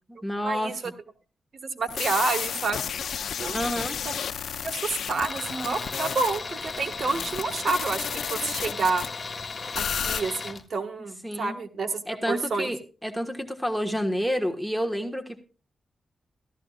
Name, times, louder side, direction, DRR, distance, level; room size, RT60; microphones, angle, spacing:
voice 1, 0.1-0.9 3.5-4.0 11.2-11.6 12.1-15.4, equal, ahead, 5 dB, 1.4 m, -29 dB
voice 2, 1.7-3.6 4.0-4.1 4.6-9.0 9.8-12.0 12.3-12.7, right 4 dB, 65° right, 7 dB, 1.5 m, -29 dB
sound 1, 1.9-9.1 9.7-10.2, left 8 dB, 90° left, 0.4 m, -32 dB
Tools, 5.2-10.6, left 4 dB, 35° left, 1.5 m, -36 dB
15.5 x 13.5 x 2.4 m, 0.35 s
wide cardioid pair, 95°, 0 cm